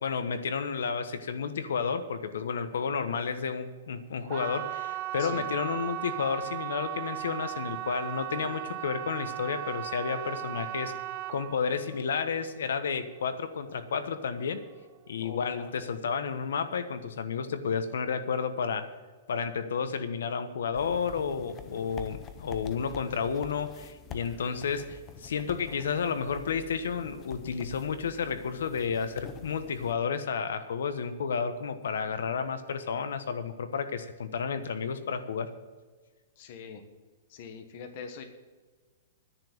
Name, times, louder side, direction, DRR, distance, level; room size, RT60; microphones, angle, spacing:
voice 1, 0.0-10.9 11.3-14.6 15.1-18.9 19.3-35.5, left 6 dB, 90° left, 10 dB, 1.2 m, -31 dB
sound 1, 4.2-15.1 15.4-15.9 16.3-16.4, right 14 dB, 30° right, 0.5 m, -37 dB
voice 2, 15.2-15.7 36.4-36.8 37.3-38.2, left 6 dB, 40° left, 7 dB, 1.2 m, -43 dB
sound 2, 20.7-29.9, left 6 dB, 15° left, 0.6 m, -47 dB
10.0 x 7.1 x 9.3 m, 1.4 s
hypercardioid pair, 175°, 0 cm